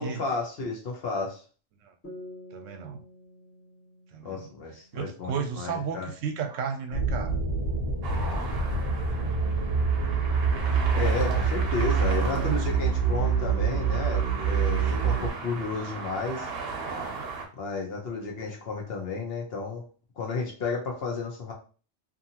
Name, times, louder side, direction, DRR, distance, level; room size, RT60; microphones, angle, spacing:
voice 1, 0.0-1.4 4.2-6.1 10.9-16.5 17.6-19.8 20.2-21.5, left 4 dB, 60° left, 1 dB, 0.9 m, -32 dB
sound 1, 2.0-5.5, left 1 dB, 15° left, 0.8 m, -48 dB
voice 2, 2.5-3.0 4.1-4.5 4.9-7.4 12.0-12.7, right 7 dB, 85° right, 6 dB, 0.9 m, -33 dB
sound 2, 6.9-15.3, right 5 dB, 40° right, 0.4 m, -26 dB
sound 3, 8.0-17.5, right 4 dB, 60° right, 0.8 m, -37 dB
2.7 x 2.5 x 2.7 m, 0.38 s
omnidirectional pair, 1.3 m